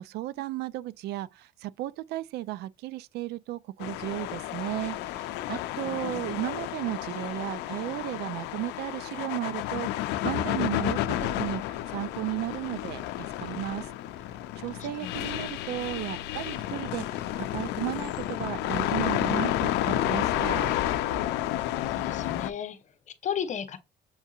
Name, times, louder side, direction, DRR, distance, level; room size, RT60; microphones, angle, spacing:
voice 1, 0.0-13.9 14.6-20.8, right 15 dB, 75° right, 0.4 m, -34 dB
sound 1, 3.8-22.5, left 13 dB, 90° left, 0.5 m, -31 dB
voice 2, 5.8-6.3 14.8-15.2 21.9-23.8, left 8 dB, 45° left, 0.9 m, -35 dB
7.2 x 2.7 x 2.4 m
cardioid pair, 110°, 17 cm